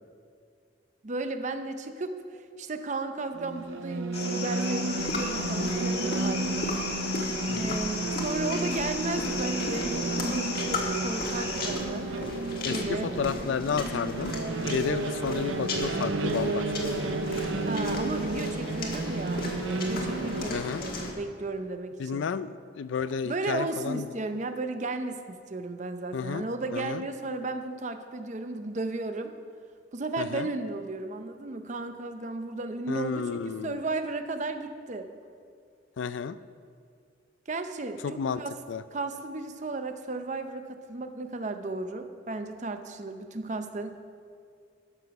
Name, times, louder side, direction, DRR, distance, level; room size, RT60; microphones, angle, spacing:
voice 1, 1.0-6.6 7.5-12.1 12.7-13.2 17.6-19.5 19.9-22.2 23.2-29.3 29.9-33.3 33.6-35.1 37.5-38.6 38.9-43.9, right 2 dB, 40° right, 8 dB, 0.6 m, -34 dB
sound 1, 3.3-20.5, right 2 dB, 90° right, 0.6 m, -32 dB
sound 2, 4.1-11.7, left 3 dB, 30° left, 1.6 m, -35 dB
sound 3, 5.0-21.1, left 2 dB, 50° left, 1.4 m, -37 dB
voice 2, 7.5-7.8 12.6-14.3 14.6-17.1 20.5-20.8 22.0-24.0 26.1-26.4 26.7-27.0 30.2-30.5 32.9-33.8 36.0-36.4 38.0-38.4 38.7-38.8, left 6 dB, 80° left, 14 dB, 0.4 m, -32 dB
12.5 x 6.0 x 5.9 m, 2.3 s
head